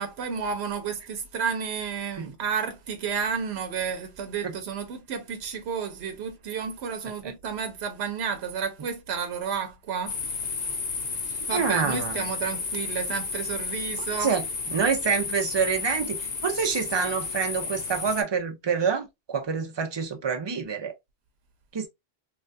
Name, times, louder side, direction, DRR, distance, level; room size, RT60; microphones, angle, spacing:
voice 1, 0.0-10.2 11.5-14.3, right 6 dB, 90° right, 0.9 m, -31 dB
sound 1, 10.1-18.2, left 4 dB, 45° left, 0.7 m, -32 dB
voice 2, 11.5-12.2 14.2-14.5 14.7-20.9 21.7-21.9, right 6 dB, 40° right, 0.4 m, -27 dB
3.2 x 2.2 x 2.5 m
omnidirectional pair, 1.1 m